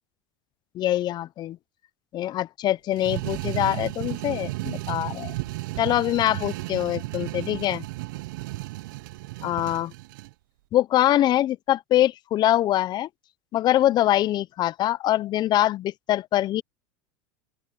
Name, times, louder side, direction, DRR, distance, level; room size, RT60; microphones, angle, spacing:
voice 1, 0.7-1.6 2.1-5.3 5.8-7.9 9.4-9.9 10.7-13.1 13.5-16.6, left 13 dB, 40° left, 0.8 m, -24 dB
sound 1, 2.9-10.3, right 21 dB, 70° right, 0.7 m, -33 dB
open air
hypercardioid pair, 100°, 11 cm